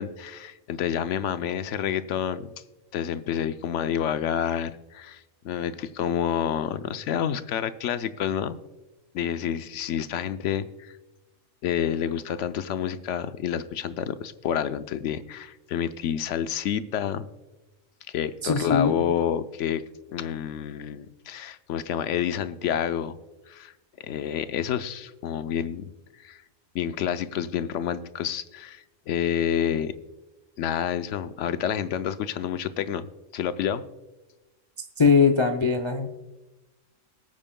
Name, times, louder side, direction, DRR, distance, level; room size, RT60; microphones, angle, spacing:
voice 1, 0.0-2.5 2.9-8.6 9.1-10.9 11.6-17.3 18.1-19.8 20.1-23.2 23.5-23.7 24.0-25.9 26.2-26.4 26.7-30.0 30.6-33.1 33.3-33.8, left 9 dB, 70° left, 11 dB, 0.9 m, -29 dB
voice 2, 18.4-19.0 35.0-36.1, left 5 dB, 30° left, 6 dB, 0.5 m, -20 dB
21.5 x 8.9 x 2.2 m, 1.1 s
omnidirectional pair, 1.4 m